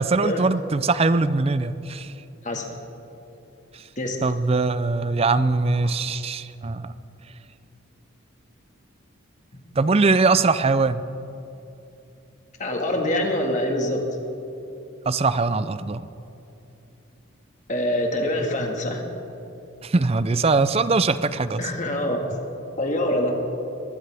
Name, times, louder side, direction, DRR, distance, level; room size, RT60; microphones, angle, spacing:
voice 1, 0.0-2.1 3.7-3.9 4.2-6.9 9.8-11.0 15.1-16.1 19.8-21.6, right 3 dB, 25° right, 14 dB, 0.4 m, -21 dB
voice 2, 12.6-14.0 17.7-19.0 21.6-22.3 22.8-23.4, left 1 dB, 35° left, 2 dB, 1.8 m, -25 dB
22.0 x 16.0 x 3.5 m, 2.9 s
head